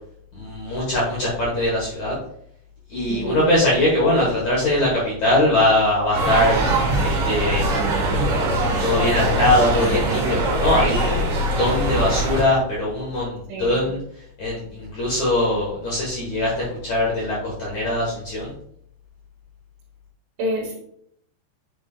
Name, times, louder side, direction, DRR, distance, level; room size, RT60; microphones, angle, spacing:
voice 1, 0.3-2.1 2.9-6.6 7.0-7.7 8.0-8.2 8.8-11.2 11.6-14.0 14.4-18.5, left 1 dB, 60° left, -5 dB, 1.9 m, -21 dB
voice 2, 3.1-3.4 11.0-11.2 13.5-13.7 20.4-20.7, right 1 dB, 85° right, -4 dB, 4.0 m, -28 dB
sound 1, 6.1-12.4, right 1 dB, 55° right, 2.5 m, -22 dB
8.7 x 6.3 x 2.4 m, 0.72 s
omnidirectional pair, 5.4 m